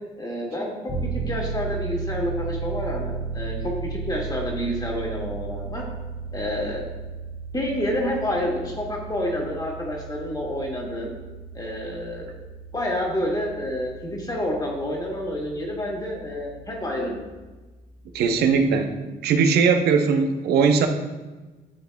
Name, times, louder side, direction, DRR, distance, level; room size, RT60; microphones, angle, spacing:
voice 1, 0.2-5.8 6.3-6.8 7.5-11.1 11.5-12.3 12.7-17.2, left 1 dB, 25° left, -1 dB, 1.9 m, -29 dB
sound 1, 0.9-17.2, right 5 dB, 50° left, 1.8 m, -35 dB
voice 2, 18.1-20.9, right 5 dB, 75° right, 6 dB, 0.7 m, -20 dB
11.0 x 4.0 x 2.3 m, 1.2 s
supercardioid pair, 65°, 17 cm